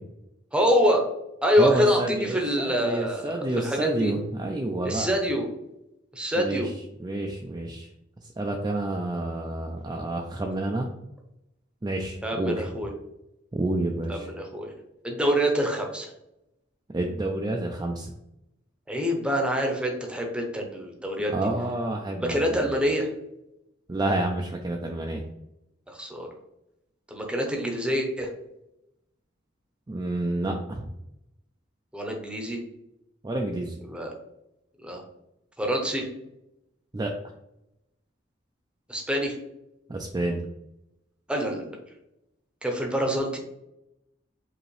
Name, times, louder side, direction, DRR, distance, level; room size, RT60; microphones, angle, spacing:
voice 1, 0.5-1.0 1.4-4.1 4.8-5.5 6.1-6.7 12.2-12.9 14.1-14.7 15.0-16.1 18.9-21.3 22.2-23.1 25.9-26.3 27.1-28.3 31.9-32.6 33.8-34.1 34.8-35.0 35.6-36.1 38.9-39.4 41.3-41.7 42.6-43.4, equal, 5° right, 2 dB, 0.8 m, -26 dB
voice 2, 1.6-5.2 6.4-6.7 7.0-7.9 8.4-10.9 11.8-12.5 13.5-14.3 16.9-18.1 21.3-22.7 23.9-25.2 29.9-30.9 33.2-33.7 36.9-37.1 39.9-40.4, right 2 dB, 20° right, 1 dB, 0.4 m, -29 dB
5.0 x 2.9 x 3.2 m, 0.86 s
head